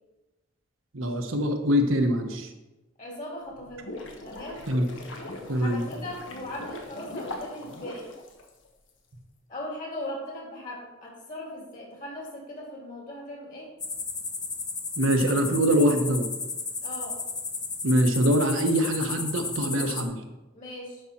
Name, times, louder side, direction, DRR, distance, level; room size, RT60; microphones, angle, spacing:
voice 1, 0.9-2.5 4.7-4.9 5.5-5.8 15.0-16.3 17.8-20.2, equal, 80° right, 4 dB, 1.2 m, -23 dB
voice 2, 3.0-3.9 4.2-4.6 5.4-8.1 9.5-13.7 16.8-17.2 20.5-21.0, left 1 dB, 40° left, -2 dB, 2.9 m, -38 dB
sound 1, 3.5-8.9, left 2 dB, 65° left, 1.4 m, -40 dB
sound 2, 13.8-20.0, left 4 dB, 20° left, 0.9 m, -34 dB
11.5 x 5.6 x 4.4 m, 1.1 s
head